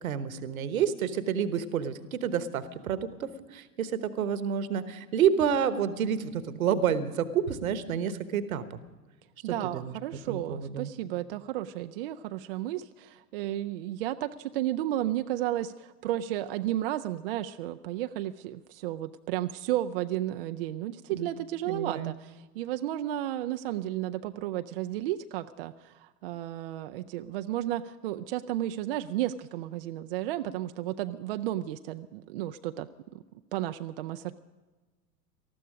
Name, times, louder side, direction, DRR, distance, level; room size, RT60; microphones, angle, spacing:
voice 1, 0.0-8.8 9.4-10.0 10.3-10.9 21.1-21.3 21.7-22.1, right 8 dB, 60° right, 13 dB, 1.2 m, -29 dB
voice 2, 9.4-33.2 33.5-34.4, right 13 dB, 40° right, 9 dB, 0.4 m, -33 dB
19.0 x 13.5 x 5.1 m, 1.3 s
figure-of-eight pair, 90°, 46 cm